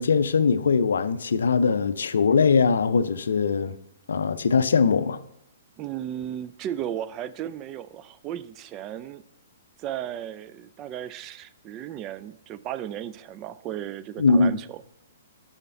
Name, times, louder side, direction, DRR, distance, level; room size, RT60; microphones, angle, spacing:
voice 1, 0.0-3.7 4.1-5.2 14.2-14.6, left 5 dB, 65° left, 0.4 m, -21 dB
voice 2, 5.8-9.2 9.8-14.8, right 11 dB, 30° right, 0.3 m, -35 dB
6.8 x 5.7 x 5.6 m
figure-of-eight pair, 120°, 0 cm